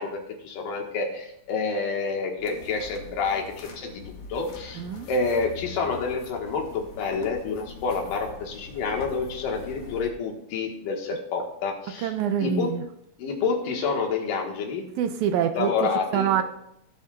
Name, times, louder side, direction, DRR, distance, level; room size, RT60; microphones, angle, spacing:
voice 1, 0.0-4.8 5.1-12.1 12.4-12.7 13.2-14.9 15.5-16.4, left 4 dB, 85° left, 1 dB, 3.1 m, -28 dB
sound 1, 2.4-10.1, left 5 dB, 60° left, 1.7 m, -43 dB
voice 2, 4.8-5.1 12.0-12.8 15.0-15.7 16.1-16.4, right 9 dB, 80° right, 8 dB, 1.9 m, -25 dB
18.0 x 7.5 x 2.3 m, 0.76 s
omnidirectional pair, 3.7 m